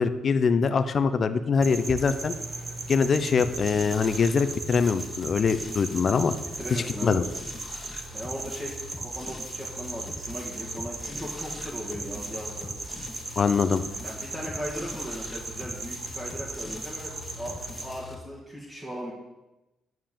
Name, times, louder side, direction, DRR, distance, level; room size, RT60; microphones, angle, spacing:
voice 1, 0.0-2.3 2.9-6.3 6.7-7.2 13.4-13.8, left 5 dB, 45° left, 10 dB, 0.6 m, -23 dB
sound 1, 1.6-17.9, right 3 dB, 35° right, 1.4 m, -38 dB
sound 2, 3.4-18.1, left 2 dB, 25° left, 1.6 m, -42 dB
voice 2, 6.6-7.3 8.1-12.8 14.0-19.1, equal, 20° right, -5 dB, 2.0 m, -38 dB
9.2 x 4.7 x 7.4 m, 1.0 s
cardioid pair, 90°, 0 cm